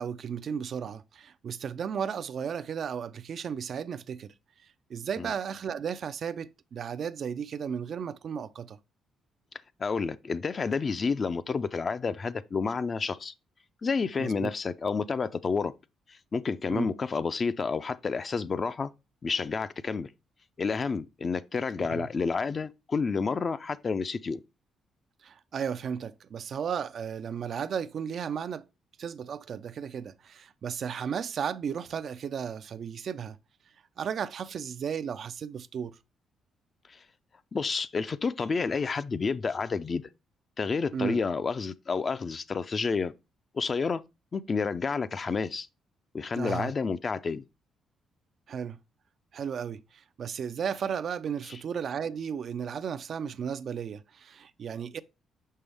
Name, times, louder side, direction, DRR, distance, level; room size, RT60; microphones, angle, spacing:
voice 1, 0.0-4.3 4.6-8.8 14.2-14.5 16.7-16.9 21.8-22.1 25.2-28.6 29.0-33.4 34.0-36.0 40.9-41.2 46.3-46.7 48.5-48.8 49.3-55.0, right 7 dB, 55° right, 0.4 m, -34 dB
voice 2, 9.8-13.3 13.8-15.7 16.3-18.9 19.2-20.1 20.6-24.4 37.5-40.0 40.6-43.1 43.5-44.0 44.3-45.7 46.1-47.4 51.5-51.6, left 5 dB, 40° left, 0.5 m, -30 dB
6.0 x 5.5 x 3.4 m
cardioid pair, 90°, 0 cm